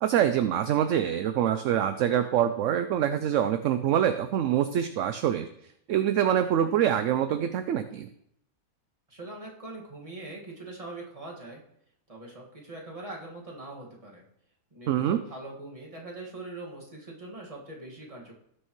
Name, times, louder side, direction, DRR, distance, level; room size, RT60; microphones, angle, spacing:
voice 1, 0.0-5.5 5.9-8.1 14.9-15.2, right 10 dB, 65° right, 10 dB, 0.8 m, -25 dB
voice 2, 9.1-11.6 12.1-14.2 14.7-18.3, right 2 dB, 25° right, -2 dB, 1.9 m, -42 dB
18.0 x 6.5 x 3.1 m, 0.73 s
omnidirectional pair, 1.6 m